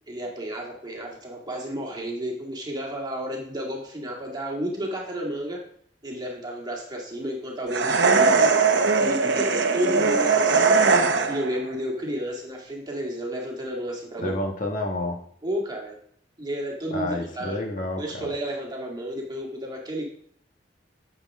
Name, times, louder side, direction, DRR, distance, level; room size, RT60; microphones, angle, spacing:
voice 1, 0.1-5.6 6.0-8.6 9.0-10.9 11.3-14.3 15.4-16.0 16.4-17.6 18.0-20.0, equal, 25° right, -1 dB, 2.0 m, -32 dB
sound 1, 7.7-11.6, right 4 dB, 80° right, 0.8 m, -20 dB
voice 2, 14.2-15.2 16.9-18.3, left 1 dB, 50° left, 2 dB, 1.4 m, -29 dB
9.9 x 7.0 x 3.6 m, 0.63 s
head